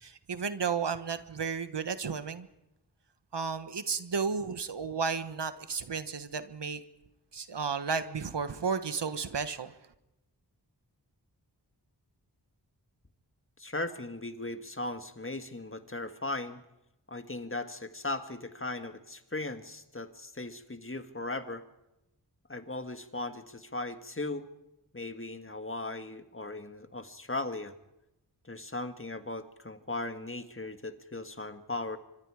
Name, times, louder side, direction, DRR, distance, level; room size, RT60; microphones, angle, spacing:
voice 1, 0.0-2.5 3.3-6.8 7.3-9.7, right 5 dB, 75° right, 11 dB, 1.4 m, -33 dB
voice 2, 13.6-16.6 17.1-21.6 22.5-24.5 24.9-27.7 28.4-32.0, left 2 dB, 30° left, 8 dB, 1.8 m, -38 dB
25.0 x 24.0 x 4.9 m, 0.91 s
cardioid pair, 40°, 42 cm